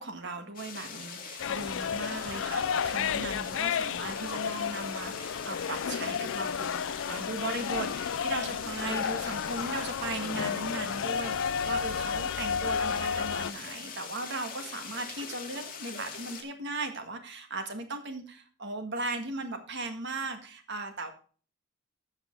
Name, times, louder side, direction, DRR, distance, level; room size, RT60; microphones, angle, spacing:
voice 1, 0.0-21.1, right 3 dB, 55° right, 7 dB, 1.8 m, -37 dB
sound 1, 0.6-16.4, left 6 dB, 40° left, 2.1 m, -42 dB
sound 2, 1.4-13.5, left 7 dB, 60° left, 0.4 m, -32 dB
14.5 x 5.6 x 3.8 m, 0.39 s
head